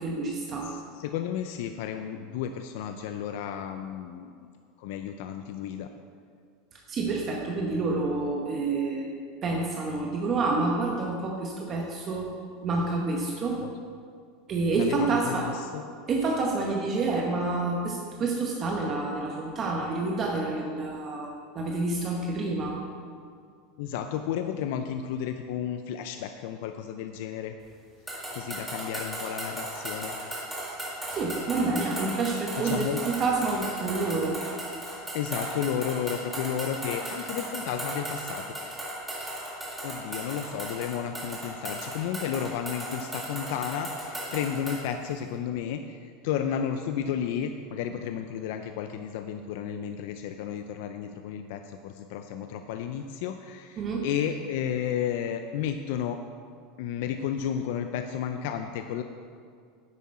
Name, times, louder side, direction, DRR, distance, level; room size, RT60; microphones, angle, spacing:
voice 1, 0.0-0.7 6.7-9.1 9.4-12.3 12.6-13.6 14.5-15.5 16.1-22.8 31.1-34.3 53.8-54.0, right 3 dB, 25° right, -1 dB, 1.0 m, -28 dB
voice 2, 0.7-4.4 4.8-5.9 13.5-13.7 14.7-15.8 23.8-27.5 28.3-30.2 32.5-33.0 35.1-38.4 39.8-56.2 56.8-59.0, left 9 dB, 60° left, 7 dB, 0.5 m, -32 dB
sound 1, 28.1-44.9, right 1 dB, 5° right, 1.7 m, -36 dB
9.7 x 8.3 x 4.3 m, 2.1 s
supercardioid pair, 165°, 0 cm